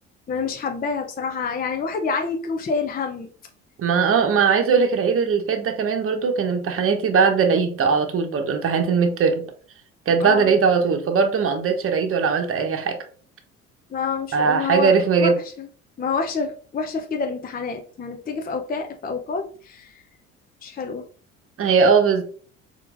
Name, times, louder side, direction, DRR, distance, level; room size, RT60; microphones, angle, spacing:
voice 1, 0.3-3.3 10.2-10.5 13.9-15.3 15.6-15.7 16.0-20.0 20.6-21.0, left 5 dB, 25° left, 4 dB, 0.6 m, -28 dB
voice 2, 3.8-9.4 10.1-13.0 14.3-15.4 21.6-22.2, right 5 dB, 35° right, 5 dB, 1.0 m, -20 dB
4.6 x 3.7 x 2.5 m, 0.43 s
hypercardioid pair, 60°, 38 cm